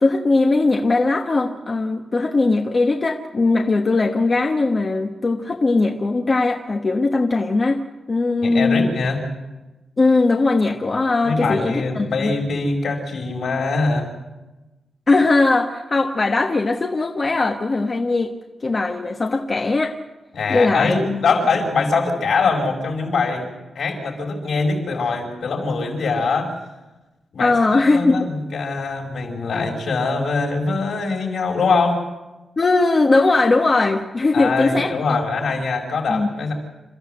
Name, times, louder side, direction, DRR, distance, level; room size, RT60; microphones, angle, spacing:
voice 1, 0.0-7.8 8.1-8.9 10.0-12.3 15.1-18.3 18.6-19.9 20.5-21.2 27.4-28.3 32.6-34.9 36.1-36.3, left 3 dB, 30° left, 3 dB, 1.3 m, -19 dB
voice 2, 8.4-9.3 11.2-14.1 20.3-26.5 27.3-32.0 34.3-36.5, left 4 dB, 65° left, 1 dB, 5.1 m, -23 dB
29.0 x 14.0 x 7.9 m, 1.1 s
wide cardioid pair, 165°, 0 cm